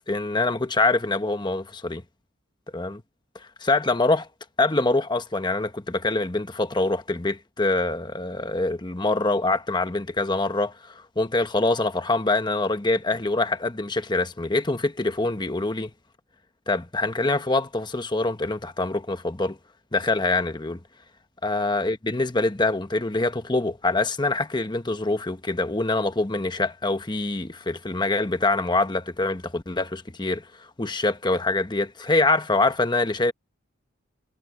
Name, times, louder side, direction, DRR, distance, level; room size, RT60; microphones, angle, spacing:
voice 1, 0.1-2.0 2.7-3.0 3.6-4.3 4.6-15.9 16.7-19.6 19.9-20.8 21.4-30.5 30.8-33.3, left 2 dB, 20° left, 1.1 m, -24 dB
head